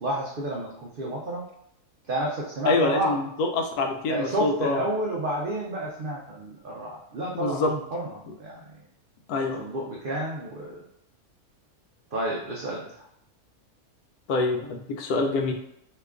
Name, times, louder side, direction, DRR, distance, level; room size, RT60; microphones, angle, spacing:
voice 1, 0.0-1.4 2.1-3.2 4.1-8.1 8.4-8.6 9.6-10.8 12.1-13.0, right 1 dB, 80° right, -3 dB, 0.4 m, -30 dB
voice 2, 2.6-4.8 7.3-7.7 9.3-9.6 14.3-15.5, left 3 dB, 85° left, 4 dB, 1.1 m, -25 dB
2.9 x 2.4 x 3.4 m, 0.78 s
omnidirectional pair, 1.6 m